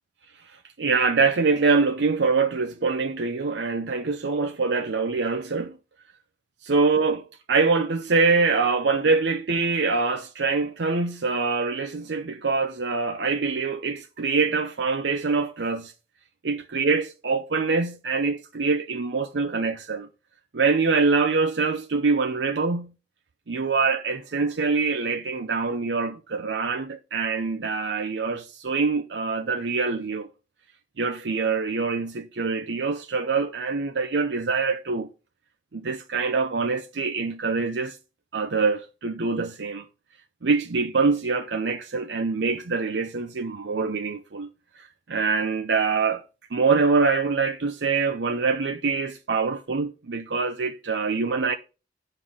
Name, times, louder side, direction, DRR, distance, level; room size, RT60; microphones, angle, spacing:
voice 1, 0.8-5.8 6.6-15.9 16.4-20.1 20.5-22.9 23.5-30.3 31.0-35.1 35.7-38.0 38.3-39.8 40.4-44.5 45.1-46.2 46.5-51.5, right 4 dB, 80° right, 0.6 m, -24 dB
9.7 x 5.6 x 4.9 m
head